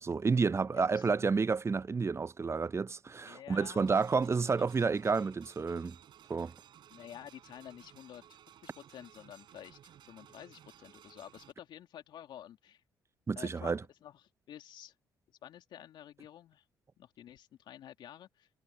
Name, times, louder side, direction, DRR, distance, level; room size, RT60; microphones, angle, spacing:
voice 1, 0.0-6.0 6.3-6.5 13.3-13.8, right 4 dB, 30° right, 0.8 m, -30 dB
voice 2, 0.7-1.1 3.2-4.6 6.9-12.8 13.3-14.9 15.4-16.6 17.0-18.5, left 11 dB, 65° left, 3.0 m, -51 dB
sound 1, 3.8-11.5, right 10 dB, 65° right, 4.7 m, -58 dB
hypercardioid pair, 45°, 8 cm